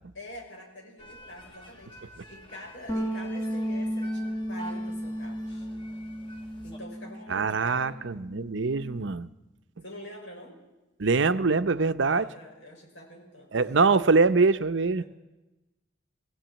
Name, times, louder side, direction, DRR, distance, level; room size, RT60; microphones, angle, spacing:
voice 1, 0.1-5.7 6.6-8.0 9.8-10.6 12.1-13.5 14.9-15.0, left 1 dB, 70° left, 0 dB, 5.8 m, -45 dB
sound 1, 1.0-6.8, right 1 dB, 25° left, 1.8 m, -48 dB
sound 2, 2.9-7.4 7.7-9.1, equal, 10° left, 2.0 m, -34 dB
voice 2, 7.3-9.3 11.0-12.3 13.5-15.0, right 4 dB, 70° right, 11 dB, 0.7 m, -23 dB
19.5 x 16.0 x 9.1 m, 1.1 s
head